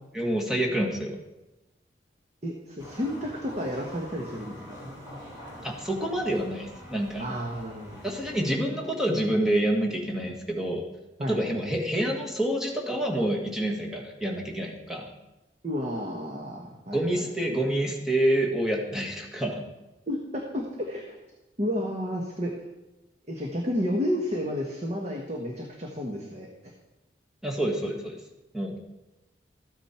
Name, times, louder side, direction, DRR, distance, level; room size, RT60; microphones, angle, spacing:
voice 1, 0.1-1.1 5.6-7.3 8.0-10.8 11.3-15.1 16.9-19.6 27.4-28.2 28.5-28.8, right 1 dB, 5° right, -1 dB, 1.7 m, -27 dB
voice 2, 2.4-4.7 7.2-8.1 11.2-11.8 15.6-17.3 20.1-21.2 21.6-22.5 23.3-26.7, equal, 40° right, 0 dB, 1.3 m, -31 dB
sound 1, 2.8-8.5, equal, 20° right, 3.9 m, -45 dB
13.5 x 9.0 x 4.4 m, 1.0 s
head